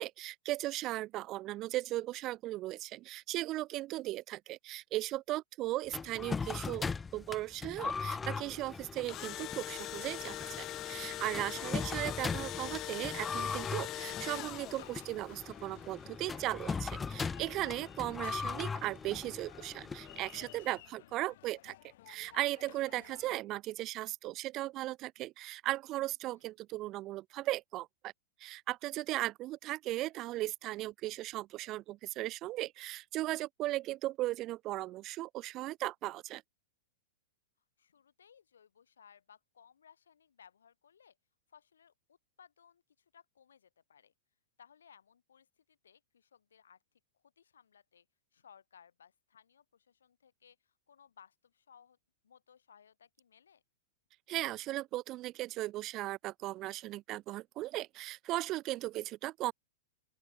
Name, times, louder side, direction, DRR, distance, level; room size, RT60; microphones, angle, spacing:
voice 1, 0.0-21.7 22.1-28.1 28.4-36.4 54.3-59.5, right 16 dB, 35° right, 0.5 m, -37 dB
sound 1, 5.9-20.6, left 5 dB, 15° left, 1.5 m, -40 dB
Engine / Drill, 8.8-15.1, left 14 dB, 35° left, 1.4 m, -42 dB
sound 2, 11.5-23.4, left 15 dB, 60° left, 5.4 m, -55 dB
voice 2, 37.8-41.2 41.5-44.1 44.6-46.8 47.1-48.1 48.3-52.0 52.2-53.6, left 7 dB, 90° left, 5.9 m, -62 dB
open air
hypercardioid pair, 125°, 0 cm